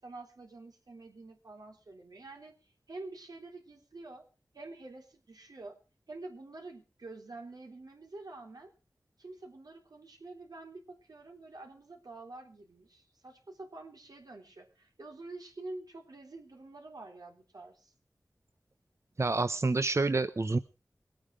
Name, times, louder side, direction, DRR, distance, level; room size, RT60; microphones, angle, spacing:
voice 1, 0.0-2.5 2.9-4.2 4.5-5.8 6.1-8.7 9.2-17.9, right 2 dB, 90° right, 2 dB, 3.6 m, -47 dB
voice 2, 19.2-20.6, right 3 dB, 45° right, 11 dB, 0.7 m, -28 dB
21.0 x 8.9 x 5.0 m, 0.34 s
wide cardioid pair, 55°, 6 cm